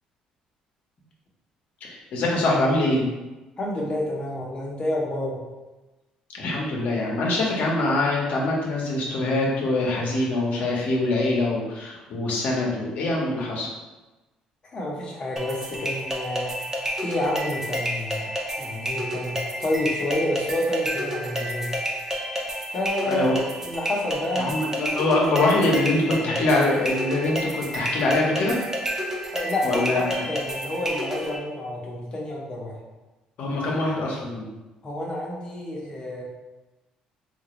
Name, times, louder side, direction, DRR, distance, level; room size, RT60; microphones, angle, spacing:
voice 1, 1.8-3.0 6.3-13.7 23.0-23.3 24.4-28.6 29.6-30.2 33.4-34.5, left 2 dB, 65° left, -3 dB, 1.0 m, -24 dB
voice 2, 3.6-5.4 14.7-16.6 17.0-18.3 18.6-21.7 22.7-23.3 23.6-24.5 29.3-32.7 34.8-36.2, left 1 dB, 35° left, -3 dB, 1.1 m, -29 dB
sound 1, 15.4-31.4, equal, 20° right, 0.7 m, -30 dB
3.8 x 2.6 x 3.1 m, 1.1 s
cardioid pair, 90°, 3 cm